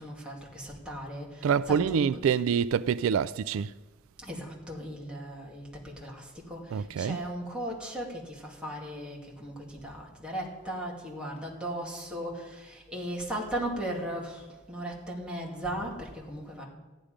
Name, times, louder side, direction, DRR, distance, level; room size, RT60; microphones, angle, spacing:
voice 1, 0.0-2.1 4.2-16.6, right 1 dB, 5° right, 2.6 m, -37 dB
voice 2, 1.4-3.7 6.7-7.2, right 7 dB, 85° right, 0.3 m, -26 dB
14.5 x 10.0 x 5.1 m
head